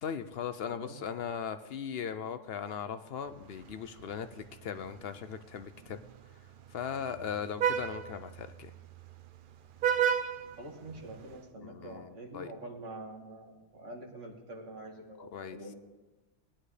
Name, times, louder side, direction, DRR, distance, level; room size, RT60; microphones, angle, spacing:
voice 1, 0.0-6.0 6.7-8.7 11.6-12.5 15.3-15.6, left 7 dB, 60° left, 10 dB, 0.7 m, -38 dB
Vehicle horn car horn honking, 3.3-11.4, right 8 dB, 55° right, 0.6 m, -36 dB
voice 2, 10.6-15.8, right 1 dB, 80° right, 0 dB, 2.2 m, -46 dB
19.0 x 10.0 x 3.3 m, 1.2 s
omnidirectional pair, 1.3 m